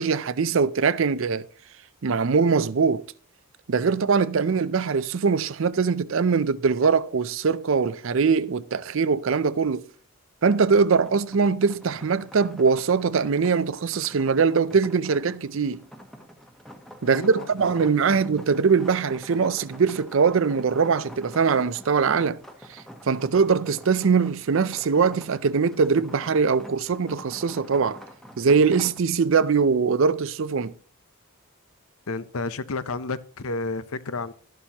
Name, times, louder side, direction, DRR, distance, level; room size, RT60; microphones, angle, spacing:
voice 1, 0.0-1.5 2.0-3.0 3.7-9.9 10.4-15.8 17.0-22.4 22.7-28.0 28.4-30.7, right 5 dB, 65° right, 0.5 m, -22 dB
sound 1, 10.7-29.0, equal, ahead, 1.1 m, -46 dB
voice 2, 17.0-17.5 18.0-18.2 32.1-34.3, left 3 dB, 80° left, 0.7 m, -31 dB
12.5 x 11.5 x 2.9 m
head